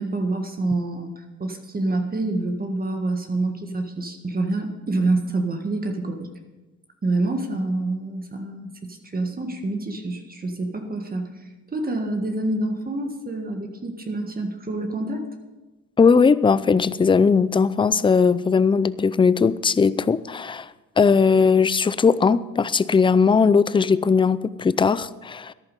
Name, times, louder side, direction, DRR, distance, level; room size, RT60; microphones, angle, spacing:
voice 1, 0.0-6.3 7.0-11.3 11.7-15.3, right 2 dB, 30° right, 5 dB, 1.7 m, -27 dB
voice 2, 16.0-20.7 21.0-25.5, left 5 dB, 15° left, 17 dB, 0.4 m, -18 dB
14.0 x 11.0 x 5.4 m, 1.1 s
cardioid pair, 90°, 30 cm